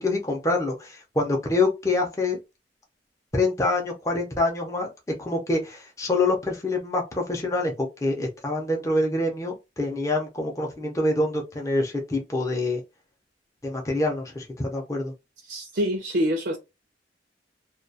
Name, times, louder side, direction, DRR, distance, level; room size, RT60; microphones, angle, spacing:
voice 1, 0.0-2.4 3.3-4.9 5.2-12.8 13.6-15.1, left 2 dB, 15° left, 0.5 m, -26 dB
voice 2, 15.5-16.6, equal, 70° right, 0.5 m, -25 dB
2.2 x 2.2 x 2.6 m
head